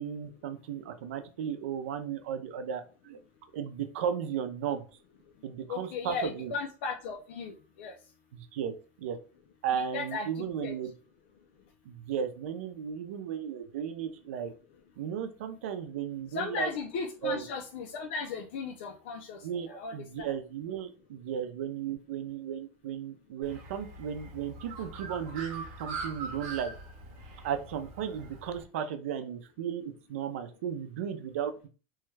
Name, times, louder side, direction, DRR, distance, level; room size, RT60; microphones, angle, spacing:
voice 1, 0.0-3.2 3.5-4.8 5.4-6.5 8.3-9.2 9.6-10.9 11.8-14.5 15.0-16.7 17.2-17.4 19.4-26.7 27.4-31.7, right 8 dB, 85° right, 8 dB, 0.5 m, -35 dB
voice 2, 5.7-7.9 9.7-10.8 16.3-20.0, left 4 dB, 65° left, 3 dB, 0.5 m, -36 dB
Bird, 23.4-28.6, right 3 dB, 45° right, 0.9 m, -42 dB
3.1 x 2.3 x 3.1 m, 0.35 s
supercardioid pair, 170°, 7 cm